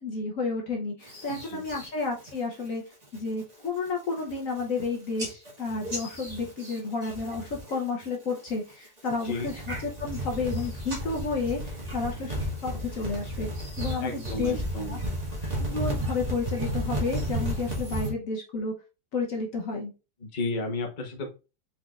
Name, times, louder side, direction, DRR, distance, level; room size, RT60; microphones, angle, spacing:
voice 1, 0.0-2.8 3.1-13.5 13.8-14.6 14.9-15.0 15.6-18.7 19.1-19.9, left 4 dB, 60° left, -1 dB, 1.2 m, -31 dB
sound 1, 1.1-1.9 2.3-2.7 3.0-3.4 3.9-4.0 4.2-4.8 5.2-7.7 8.0-8.5 9.0-18.1, equal, 25° right, 1.7 m, -33 dB
voice 2, 1.3-1.6 9.2-9.5 14.0-15.0 20.3-21.4, left 2 dB, 35° left, 2 dB, 1.0 m, -33 dB
4.8 x 4.2 x 2.4 m, 0.30 s
omnidirectional pair, 1.8 m